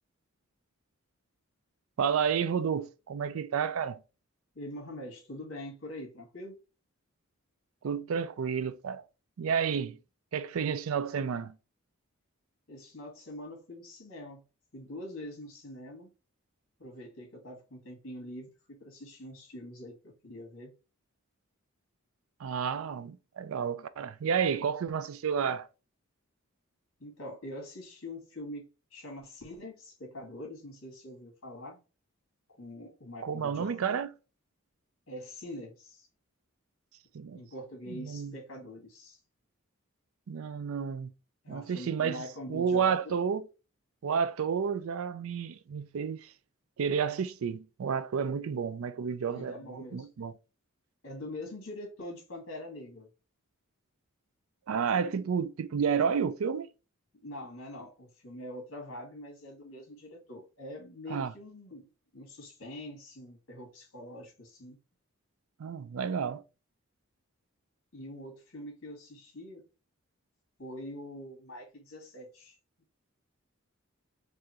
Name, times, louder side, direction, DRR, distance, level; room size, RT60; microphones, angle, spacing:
voice 1, 2.0-4.0 7.8-9.0 9.4-10.0 10.3-11.5 22.4-25.7 33.2-34.1 37.1-37.4 37.9-38.3 40.3-41.1 41.5-42.2 42.5-43.4 44.0-46.3 46.8-50.3 54.7-56.7 61.1-61.3 65.6-66.4, right 6 dB, 75° right, 0.4 m, -31 dB
voice 2, 4.6-6.6 12.7-14.4 14.7-16.1 16.8-20.7 27.0-31.8 32.6-34.0 35.1-36.1 37.3-39.2 41.4-43.2 49.3-50.1 51.0-53.1 57.2-61.9 62.1-64.8 67.9-69.6 70.6-72.6, left 1 dB, 60° left, 1.9 m, -44 dB
4.6 x 2.5 x 2.9 m
head